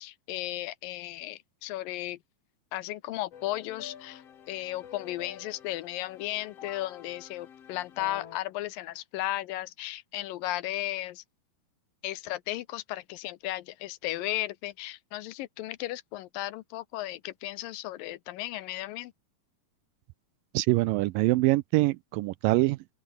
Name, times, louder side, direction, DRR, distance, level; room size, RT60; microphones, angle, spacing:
voice 1, 0.0-2.2 2.7-11.2 12.0-19.1, left 15 dB, 75° left, 2.4 m, -35 dB
sound 1, 3.3-8.4, left 8 dB, 50° left, 2.5 m, -48 dB
voice 2, 20.5-22.9, right 20 dB, 80° right, 2.1 m, -24 dB
open air
omnidirectional pair, 4.2 m